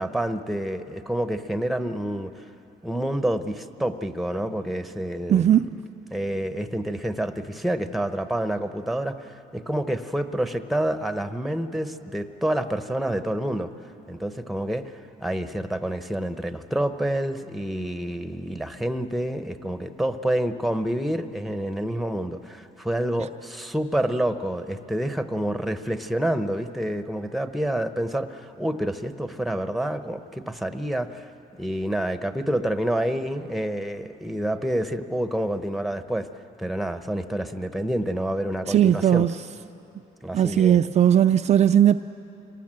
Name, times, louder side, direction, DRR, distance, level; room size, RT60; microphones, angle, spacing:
voice 1, 0.0-2.3 2.8-5.6 6.1-13.7 14.1-31.3 31.6-36.3 36.6-39.3 40.2-40.8, right 1 dB, ahead, 9 dB, 0.9 m, -28 dB
voice 2, 5.3-5.7 38.7-39.3 40.3-42.0, right 10 dB, 40° right, 8 dB, 0.4 m, -18 dB
26.5 x 18.5 x 7.6 m, 3.0 s
cardioid pair, 110°, 17 cm